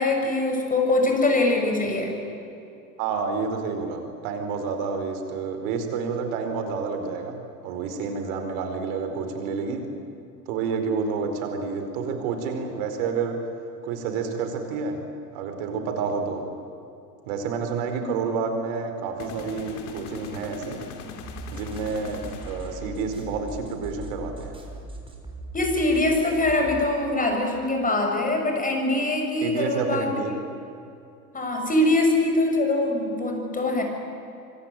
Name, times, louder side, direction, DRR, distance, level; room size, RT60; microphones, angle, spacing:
voice 1, 0.0-2.1 18.2-18.3 25.5-30.2 31.3-33.8, left 2 dB, 15° left, 3 dB, 6.4 m, -23 dB
voice 2, 3.0-9.8 10.5-13.4 13.8-15.0 15.3-16.4 17.3-20.8 21.5-24.6 29.4-30.3, right 5 dB, 55° right, 6 dB, 4.8 m, -29 dB
sound 1, 19.2-23.1, left 5 dB, 60° left, 3.4 m, -41 dB
sound 2, 21.2-26.8, right 1 dB, 10° right, 5.5 m, -39 dB
26.0 x 24.0 x 9.2 m, 2.7 s
hypercardioid pair, 85°, 48 cm